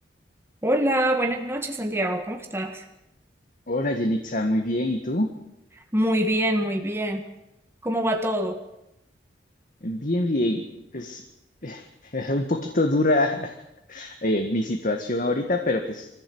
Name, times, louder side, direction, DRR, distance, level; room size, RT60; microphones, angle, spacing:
voice 1, 0.6-2.8 5.7-7.2 7.8-8.6, right 1 dB, 15° right, 4 dB, 1.7 m, -25 dB
voice 2, 3.7-5.3 9.8-10.6 10.9-11.2 11.6-13.6 13.9-16.1, left 1 dB, 50° left, 4 dB, 1.8 m, -25 dB
24.0 x 15.5 x 8.0 m, 0.87 s
head